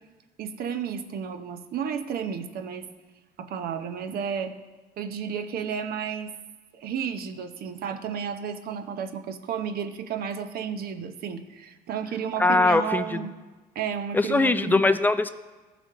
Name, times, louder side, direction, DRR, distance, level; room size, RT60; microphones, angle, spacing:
voice 1, 0.4-2.9 3.4-4.5 5.0-6.3 6.7-13.3 13.7-14.8, right 7 dB, 65° right, 9 dB, 0.8 m, -32 dB
voice 2, 12.4-13.3 14.1-15.3, left 2 dB, 10° left, 9 dB, 0.4 m, -21 dB
15.0 x 5.1 x 3.7 m, 1.3 s
cardioid pair, 110°, 17 cm